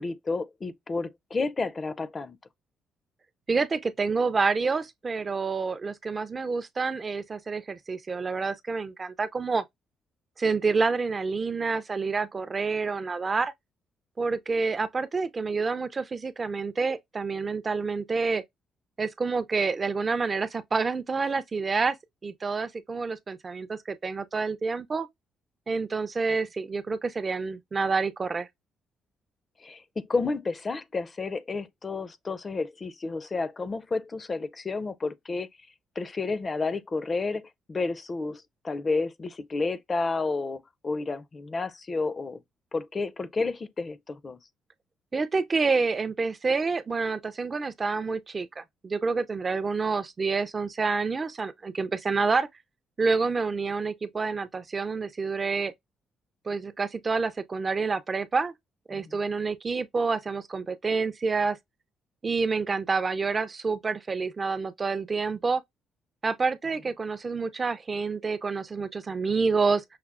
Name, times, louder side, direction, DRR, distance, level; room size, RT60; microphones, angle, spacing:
voice 1, 0.0-2.4 29.6-35.5 36.0-37.4 37.7-42.4 42.7-44.4 58.9-59.0, left 3 dB, 35° left, 0.4 m, -31 dB
voice 2, 3.5-9.6 10.4-13.5 14.2-18.4 19.0-22.0 22.2-25.1 25.7-28.5 45.1-52.5 53.0-55.7 56.5-58.5 58.9-61.6 62.2-65.6 66.2-69.8, right 4 dB, 35° right, 0.4 m, -28 dB
5.6 x 2.0 x 2.4 m
cardioid pair, 90°, 0 cm